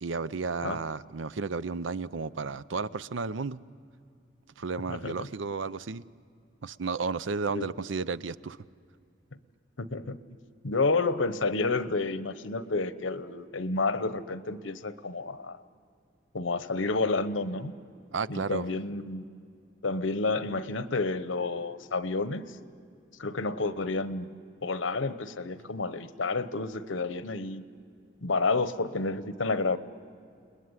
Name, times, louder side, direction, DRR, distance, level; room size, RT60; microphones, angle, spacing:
voice 1, 0.0-3.6 4.6-6.0 6.6-8.6 18.1-18.7, right 4 dB, 80° right, 16 dB, 0.6 m, -33 dB
voice 2, 4.9-5.3 7.5-7.7 9.8-10.2 10.6-15.6 16.3-17.7 18.3-19.2 19.8-22.4 23.2-24.3 24.6-27.6 28.2-29.8, left 3 dB, 85° left, 13 dB, 1.0 m, -30 dB
30.0 x 20.0 x 9.7 m, 2.4 s
head